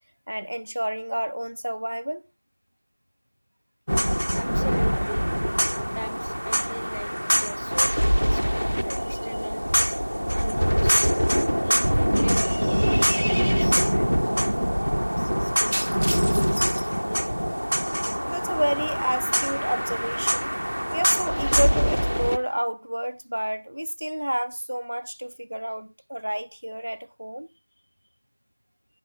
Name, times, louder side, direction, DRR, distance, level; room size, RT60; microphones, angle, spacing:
voice 1, 0.3-2.2 18.2-20.5 20.9-27.5, equal, 50° right, 0.5 m, -29 dB
sound 1, 3.9-22.4, equal, 85° right, 0.6 m, -24 dB
voice 2, 4.3-9.6 10.3-16.0 16.5-17.2, equal, 85° left, 1.0 m, -39 dB
11.0 x 10.0 x 2.9 m
figure-of-eight pair, 175°, 0 cm